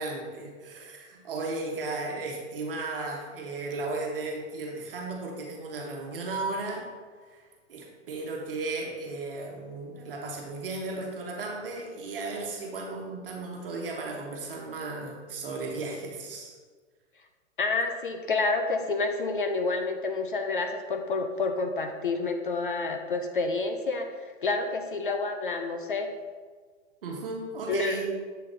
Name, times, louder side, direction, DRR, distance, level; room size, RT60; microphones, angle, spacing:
voice 1, 0.0-6.9 7.3-7.4 7.7-16.5 27.0-28.1, right 3 dB, 50° right, 0 dB, 1.3 m, -35 dB
voice 2, 17.6-26.1 27.7-28.0, left 3 dB, 45° left, 6 dB, 0.4 m, -29 dB
7.4 x 3.9 x 3.9 m, 1.5 s
hypercardioid pair, 175°, 37 cm